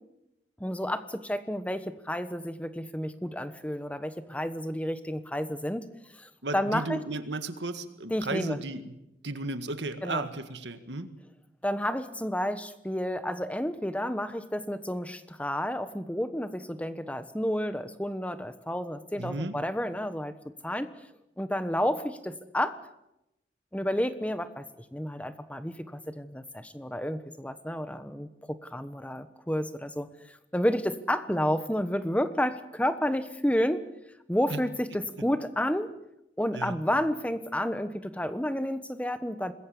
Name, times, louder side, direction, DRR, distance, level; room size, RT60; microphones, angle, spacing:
voice 1, 0.6-5.8 6.1-7.0 8.1-8.6 10.0-10.2 11.6-20.3 20.6-20.9 21.4-22.8 23.7-24.6 24.9-33.8 34.3-35.9 36.4-39.5, equal, 5° left, 11 dB, 1.2 m, -30 dB
voice 2, 6.4-9.0 9.2-11.1 19.2-19.6 34.5-34.6 35.2-35.3 36.5-36.8, right 2 dB, 75° right, 10 dB, 1.9 m, -34 dB
26.0 x 21.0 x 7.2 m, 0.88 s
head